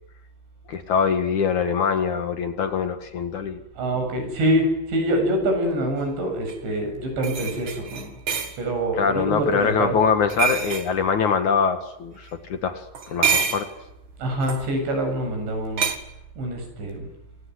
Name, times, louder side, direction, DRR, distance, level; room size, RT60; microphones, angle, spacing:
voice 1, 0.7-3.6 9.0-13.7, left 6 dB, 55° left, 8 dB, 2.5 m, -23 dB
voice 2, 3.8-8.1 8.6-9.9 14.2-15.9 16.4-17.1, right 1 dB, 70° right, 5 dB, 10.0 m, -25 dB
sound 1, 6.5-6.6 7.2-8.6 10.3-10.9 12.9-13.7 14.4-14.6 15.8-16.0, right 7 dB, 45° right, 1.6 m, -25 dB
27.5 x 26.0 x 8.1 m, 0.84 s
omnidirectional pair, 5.4 m